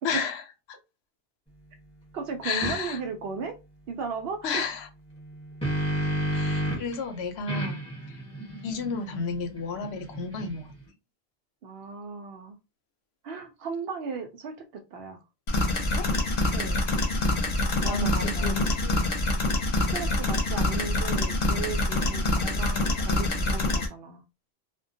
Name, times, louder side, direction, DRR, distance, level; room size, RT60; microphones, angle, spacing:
voice 1, 0.0-0.4 0.7-0.8 2.4-3.0 4.4-4.9 6.3-7.8 8.6-10.7 15.9-16.1 17.9-19.1, left 4 dB, 85° left, 0.8 m, -32 dB
voice 2, 2.1-3.6 3.9-4.6 7.5-7.7 11.6-12.6 13.2-15.2 16.5-16.8 17.8-18.8 19.9-24.2, right 5 dB, 75° right, 0.8 m, -36 dB
sound 1, 2.6-2.8 5.2-7.0 7.5-10.8, right 1 dB, 5° left, 1.0 m, -31 dB
sound 2, 15.5-23.9, left 2 dB, 45° left, 0.7 m, -26 dB
2.2 x 2.1 x 2.6 m
omnidirectional pair, 1.0 m